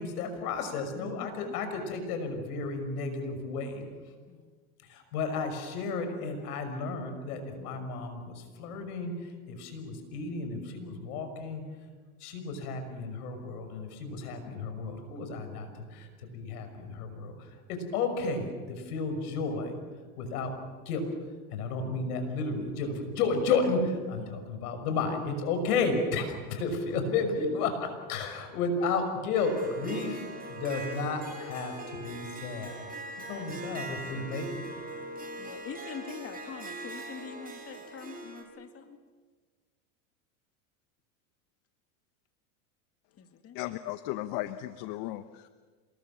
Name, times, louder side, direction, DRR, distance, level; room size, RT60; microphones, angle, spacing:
voice 1, 0.0-3.9 4.8-11.6 12.2-19.8 20.2-20.5 20.9-21.1 21.5-30.2 30.5-32.7 33.3-34.7, left 4 dB, 80° left, 7 dB, 6.0 m, -32 dB
voice 2, 1.0-1.5 4.3-4.6 24.1-24.4 26.9-27.3 33.3-34.3 35.4-39.0 43.2-43.6, left 7 dB, 30° left, 6 dB, 2.1 m, -45 dB
Harp, 29.3-38.4, right 1 dB, 20° right, 5.3 m, -41 dB
voice 3, 43.5-45.5, left 15 dB, 55° left, 11 dB, 1.1 m, -36 dB
27.5 x 20.5 x 7.3 m, 1.5 s
supercardioid pair, 110°, 45 cm